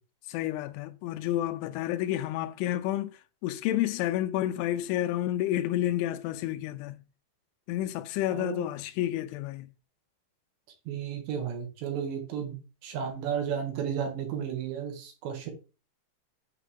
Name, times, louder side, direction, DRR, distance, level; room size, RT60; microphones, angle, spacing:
voice 1, 0.3-7.0 7.7-9.7, left 13 dB, 85° left, 2.9 m, -30 dB
voice 2, 8.3-8.7 10.9-12.6 12.8-15.5, right 8 dB, 70° right, 3.9 m, -33 dB
9.1 x 6.7 x 3.7 m
omnidirectional pair, 5.6 m